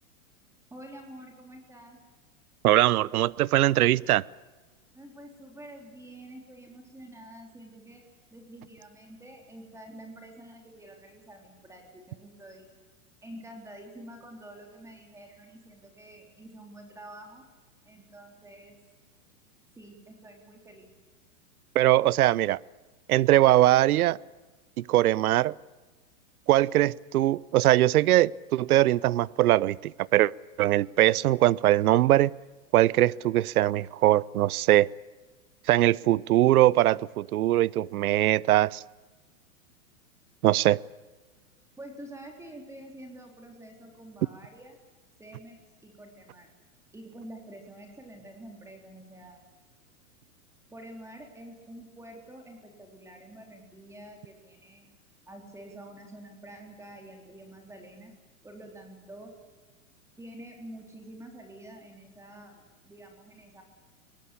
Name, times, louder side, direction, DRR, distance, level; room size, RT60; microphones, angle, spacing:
voice 1, 0.7-2.0 4.9-8.0 8.3-12.7 13.2-17.4 17.8-18.8 19.8-20.9 41.8-44.8 45.2-46.5 46.9-49.4 50.7-54.9 55.3-58.1 58.4-59.3 60.2-63.6, right 1 dB, 5° right, 3.7 m, -47 dB
voice 2, 2.6-4.2 21.7-22.6 23.1-24.2 24.8-25.5 26.5-30.3 30.6-32.3 32.7-34.9 35.7-38.8 40.4-40.8, right 15 dB, 80° right, 0.7 m, -21 dB
24.0 x 18.5 x 8.5 m
hypercardioid pair, 140°, 43 cm